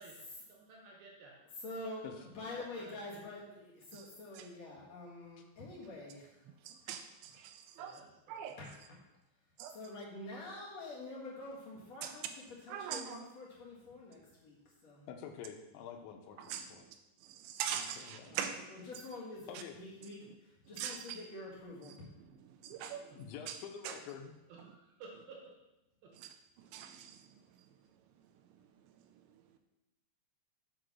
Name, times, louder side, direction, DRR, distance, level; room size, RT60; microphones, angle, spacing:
voice 1, 0.0-1.4 2.1-3.3 7.7-8.6 24.5-25.5 26.0-26.1, right 3 dB, 70° right, -1 dB, 2.7 m, -55 dB
voice 2, 1.6-2.0 2.3-6.4 8.6-9.0 9.7-15.0 18.3-18.4 18.7-22.1, left 2 dB, 55° left, -5 dB, 2.0 m, -47 dB
voice 3, 6.5-8.0 8.3-8.6 9.6-9.8 12.0-12.2 12.7-13.3 16.4-18.7 19.5-19.6 20.2-20.3 20.7-21.2 21.9-22.0 22.5-23.2 23.5-23.6 23.8-24.0 24.6-24.7 26.2-27.6 28.8-29.3, right 8 dB, 85° right, 7 dB, 2.8 m, -43 dB
voice 4, 15.1-16.8 17.7-18.4 19.5-19.8 23.1-24.3, left 7 dB, 85° left, 5 dB, 3.1 m, -48 dB
8.6 x 5.1 x 6.0 m, 0.95 s
omnidirectional pair, 5.3 m